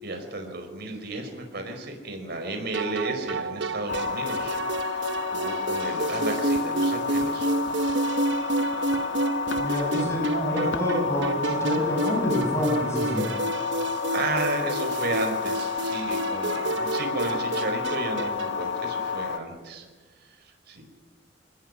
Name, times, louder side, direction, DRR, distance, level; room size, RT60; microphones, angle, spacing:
voice 1, 0.0-7.5 14.1-19.8 20.2-20.3 20.7-20.8, right 2 dB, 60° right, 4 dB, 4.9 m, -33 dB
sound 1, 2.7-18.7, right 2 dB, 80° right, 1.1 m, -30 dB
sound 2, 3.9-19.4, left 6 dB, 70° left, 1.5 m, -30 dB
voice 2, 9.6-13.3, left 1 dB, 15° left, -1 dB, 5.9 m, -27 dB
23.5 x 19.5 x 9.8 m, 1.4 s
head